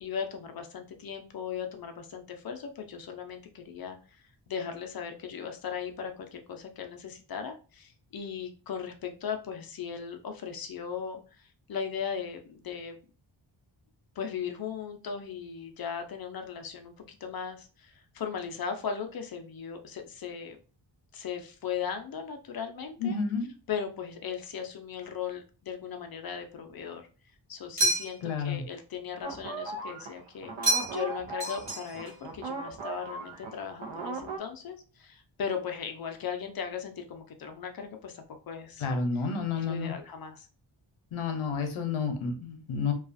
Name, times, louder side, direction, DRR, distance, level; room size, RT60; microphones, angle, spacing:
voice 1, 0.0-4.2 4.5-13.0 14.2-20.6 21.1-23.2 23.7-27.0 27.5-38.8 39.1-39.3 39.5-40.5, left 7 dB, 50° left, 5 dB, 0.5 m, -38 dB
voice 2, 23.0-23.5 28.2-28.6 38.8-39.9 41.1-42.9, left 5 dB, 90° left, 5 dB, 0.7 m, -30 dB
sound 1, 27.8-28.4 30.6-31.1 31.4-32.2, right 2 dB, 35° right, 1.2 m, -29 dB
sound 2, 29.2-34.4, right 3 dB, 75° right, 0.7 m, -38 dB
2.3 x 2.3 x 2.5 m, 0.36 s
wide cardioid pair, 140°, 48 cm